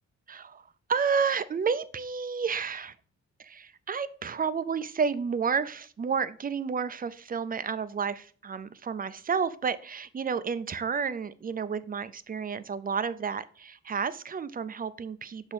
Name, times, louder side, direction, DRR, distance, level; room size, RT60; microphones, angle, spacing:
voice 1, 0.3-2.9 3.4-15.5, right 6 dB, 30° right, 14 dB, 0.5 m, -31 dB
5.9 x 4.4 x 5.1 m, 0.43 s
cardioid pair, 85°, 29 cm